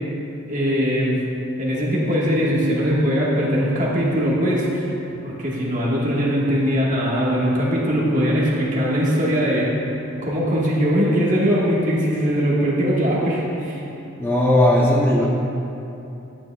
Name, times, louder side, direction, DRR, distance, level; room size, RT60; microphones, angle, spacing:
voice 1, 0.5-1.2 1.6-4.9 5.2-9.8 10.2-13.8, equal, 40° right, -5 dB, 1.6 m, -21 dB
sound 1, 3.4-14.1, right 5 dB, 10° right, 1.2 m, -44 dB
voice 2, 14.2-15.2, left 1 dB, 10° left, -4 dB, 0.7 m, -17 dB
12.0 x 9.1 x 2.4 m, 2.8 s
head